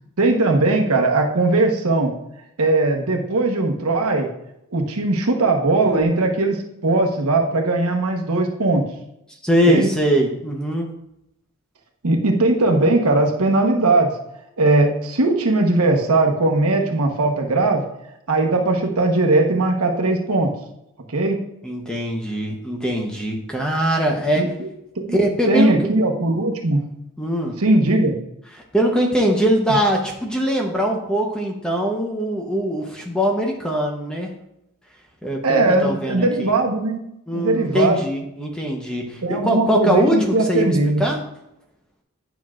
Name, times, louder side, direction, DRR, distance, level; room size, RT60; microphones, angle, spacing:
voice 1, 0.2-2.1 2.6-4.3 4.7-6.6 6.8-8.8 9.7-9.9 12.0-14.1 14.6-17.8 18.3-20.5 21.1-21.4 24.4-24.7 24.9-25.2 25.5-26.9 27.6-28.1 35.4-37.0 37.3-38.0 39.2-41.1, right 2 dB, 80° right, 2 dB, 1.1 m, -19 dB
voice 2, 9.4-10.9 21.6-24.5 25.1-25.7 27.2-27.6 28.5-34.3 35.2-36.5 37.3-41.2, equal, 5° left, 0 dB, 0.8 m, -22 dB
9.6 x 6.0 x 2.5 m, 0.82 s
head